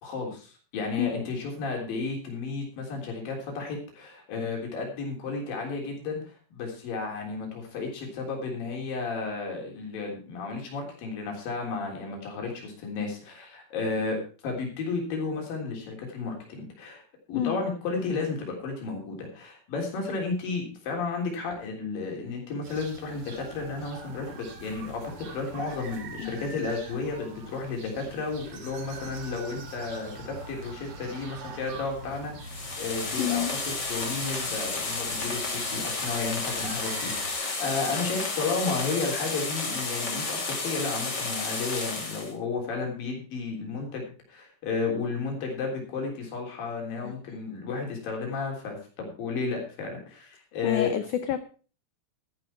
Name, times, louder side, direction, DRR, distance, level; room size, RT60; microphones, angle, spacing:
voice 1, 0.0-17.0 17.3-33.5 33.9-50.9, left 4 dB, 65° left, 0 dB, 5.2 m, -33 dB
sound 1, 22.6-37.3, right 3 dB, 45° right, 2.3 m, -43 dB
sound 2, 32.4-42.3, left 3 dB, 30° left, 2.8 m, -32 dB
voice 2, 33.2-33.6 47.0-47.1 50.6-51.4, left 11 dB, 80° left, 11 dB, 1.8 m, -28 dB
13.0 x 11.5 x 4.4 m, 0.36 s
omnidirectional pair, 4.5 m